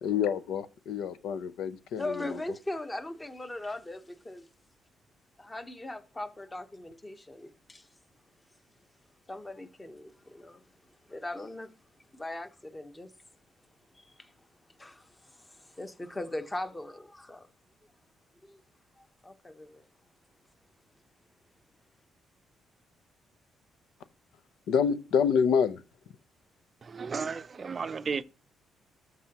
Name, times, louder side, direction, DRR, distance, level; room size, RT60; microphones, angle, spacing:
voice 1, 0.0-2.4 24.7-25.8, left 7 dB, 80° left, 0.6 m, -27 dB
voice 2, 2.0-4.5 5.4-7.9 9.3-10.6 11.1-11.7 12.1-13.1 13.9-14.3 14.8-17.5 18.4-18.6 19.0-19.9, left 2 dB, 15° left, 1.0 m, -40 dB
voice 3, 26.8-28.2, right 5 dB, 40° right, 0.5 m, -34 dB
13.0 x 4.7 x 2.9 m
cardioid pair, 90°, 0 cm